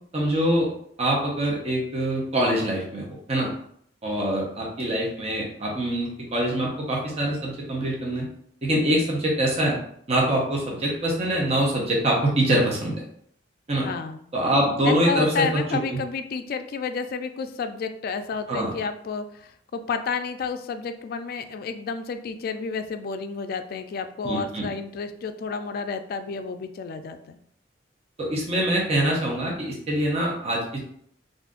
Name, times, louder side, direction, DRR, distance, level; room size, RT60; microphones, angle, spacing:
voice 1, 0.1-0.7 1.0-3.5 4.0-8.2 8.6-9.8 10.1-13.0 13.7-13.9 14.3-15.4 15.9-16.0 18.5-18.7 24.2-24.7 28.2-30.8, right 1 dB, 35° right, -3 dB, 0.7 m, -24 dB
voice 2, 13.8-14.2 14.8-27.4, left 5 dB, 55° left, 8 dB, 0.3 m, -31 dB
2.5 x 2.4 x 3.6 m, 0.66 s
head